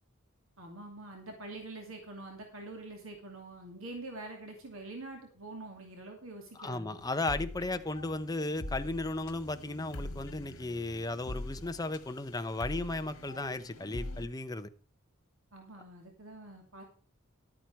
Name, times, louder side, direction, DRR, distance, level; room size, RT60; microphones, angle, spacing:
voice 1, 0.6-7.0 15.5-16.8, right 2 dB, 75° right, 2.7 m, -45 dB
voice 2, 6.6-14.7, left 2 dB, 20° left, 0.8 m, -35 dB
sound 1, 7.0-14.3, left 1 dB, 90° left, 1.5 m, -43 dB
12.0 x 8.9 x 4.6 m
head